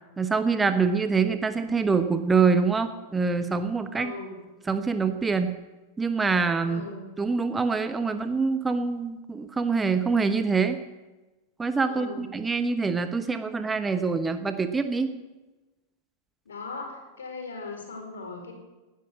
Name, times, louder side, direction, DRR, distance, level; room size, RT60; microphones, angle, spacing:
voice 1, 0.2-4.1 4.7-5.5 6.0-10.8 11.6-15.1, right 4 dB, 15° right, 9 dB, 1.1 m, -25 dB
voice 2, 3.9-4.4 6.6-7.0 11.9-12.3 16.4-18.5, left 4 dB, 65° left, 3 dB, 4.7 m, -38 dB
19.0 x 11.5 x 6.3 m, 1.1 s
figure-of-eight pair, 90°, 0 cm